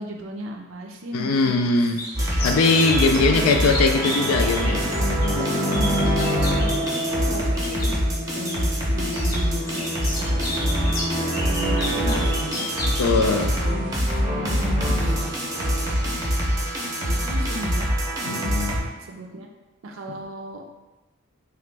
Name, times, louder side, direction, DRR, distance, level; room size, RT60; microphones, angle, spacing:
voice 1, 0.0-1.9 3.0-3.7 5.3-6.9 7.1-12.7 13.1-15.3 15.8-17.9 18.2-18.4 19.0-19.5 19.8-20.6, right 1 dB, 65° right, 2 dB, 0.4 m, -36 dB
voice 2, 1.1-2.0 2.4-5.4 13.0-13.5 18.2-18.8, left 3 dB, 90° left, 5 dB, 0.4 m, -21 dB
sound 1, 1.9-14.2, left 1 dB, 45° left, 0.6 m, -34 dB
sound 2, 2.1-18.8, equal, 15° right, 0.5 m, -24 dB
sound 3, 2.4-9.4 9.8-10.3, left 2 dB, 70° left, 0.8 m, -38 dB
3.0 x 2.4 x 3.2 m, 1.1 s
head